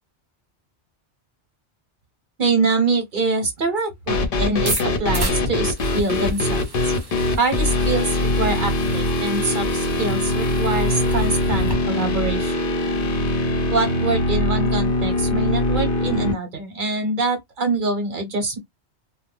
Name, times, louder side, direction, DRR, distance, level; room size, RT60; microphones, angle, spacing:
voice 1, 2.4-6.9 7.4-12.5 13.7-18.6, right 3 dB, 50° right, 1.0 m, -24 dB
sound 1, 4.1-16.3, left 2 dB, 55° left, 0.8 m, -22 dB
sound 2, 4.5-11.7, right 2 dB, 25° right, 0.7 m, -33 dB
2.2 x 2.2 x 3.1 m
omnidirectional pair, 1.2 m